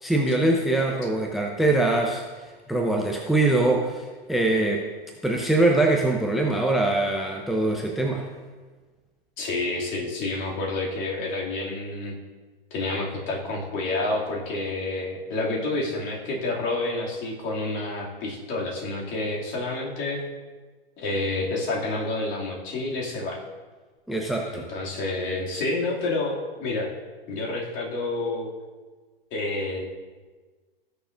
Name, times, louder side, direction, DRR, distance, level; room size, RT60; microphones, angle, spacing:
voice 1, 0.0-4.9 5.2-8.3 24.1-24.7, right 2 dB, ahead, 1 dB, 0.7 m, -23 dB
voice 2, 9.4-12.2 12.7-20.2 21.0-23.4 24.5-26.9 27.3-28.5 29.3-29.8, left 2 dB, 40° left, -3 dB, 2.6 m, -29 dB
17.5 x 6.8 x 2.6 m, 1.4 s
hypercardioid pair, 100°, 30 cm